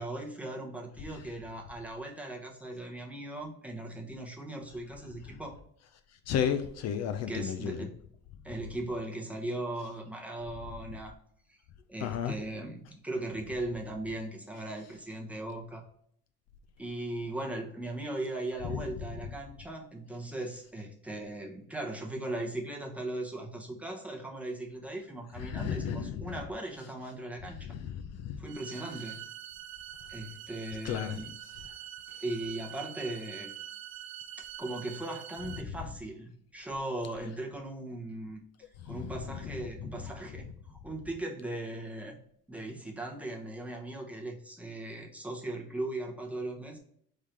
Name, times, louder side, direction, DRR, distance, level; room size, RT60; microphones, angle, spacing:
voice 1, 0.0-5.6 7.3-7.9 8.4-11.1 11.5-11.6 11.9-15.8 16.8-27.7 28.4-29.2 30.1-31.3 32.2-33.5 34.4-38.4 38.9-42.2 42.5-46.8, right 1 dB, 5° right, 0.8 m, -38 dB
voice 2, 6.3-7.8 12.0-12.3 18.7-18.8 25.4-26.3 27.7-28.4 30.8-31.2 38.9-39.1 39.4-39.5, left 8 dB, 55° left, 0.4 m, -33 dB
sound 1, 28.5-35.6, right 11 dB, 55° right, 0.5 m, -45 dB
3.6 x 3.3 x 4.2 m
cardioid pair, 130°, 32 cm